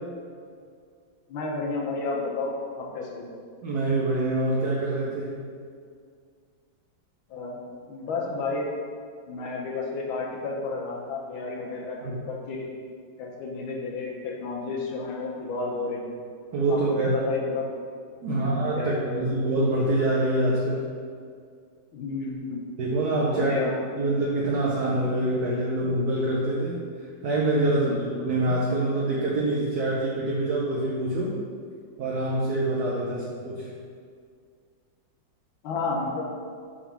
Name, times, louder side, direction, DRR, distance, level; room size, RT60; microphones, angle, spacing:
voice 1, 1.3-3.3 7.3-7.6 7.9-8.7 9.3-12.7 13.2-16.2 16.7-17.7 18.2-19.3 21.9-22.6 23.3-23.7 27.8-28.0 33.1-33.2 35.6-36.2, left 3 dB, 85° left, -2 dB, 1.7 m, -31 dB
voice 2, 3.6-5.4 12.0-12.2 16.5-17.1 18.2-20.9 22.8-23.5 24.0-26.8 27.2-31.4 32.0-33.7, right 2 dB, 60° right, -4 dB, 1.1 m, -25 dB
4.9 x 3.7 x 5.6 m, 2.1 s
omnidirectional pair, 2.1 m